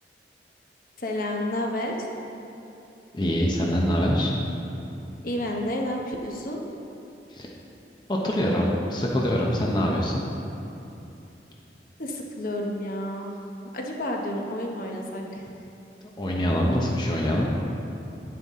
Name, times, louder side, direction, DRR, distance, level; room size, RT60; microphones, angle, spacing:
voice 1, 1.0-2.0 5.2-6.6 12.0-13.3 13.7-15.4, left 1 dB, 50° left, 0 dB, 0.9 m, -30 dB
voice 2, 3.1-4.3 7.3-7.5 8.1-10.2 16.2-17.5, equal, 25° left, -2 dB, 0.8 m, -24 dB
9.5 x 8.8 x 3.7 m, 2.9 s
head